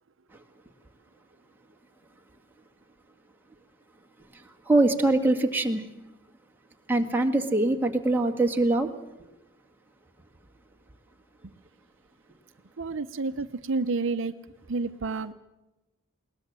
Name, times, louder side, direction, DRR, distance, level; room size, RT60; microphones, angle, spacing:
voice 1, 4.3-5.8 6.9-8.9, right 2 dB, 10° right, 2 dB, 1.9 m, -23 dB
voice 2, 12.8-14.3 14.7-15.3, right 3 dB, 65° right, 10 dB, 0.7 m, -30 dB
21.5 x 19.5 x 7.5 m, 1.0 s
head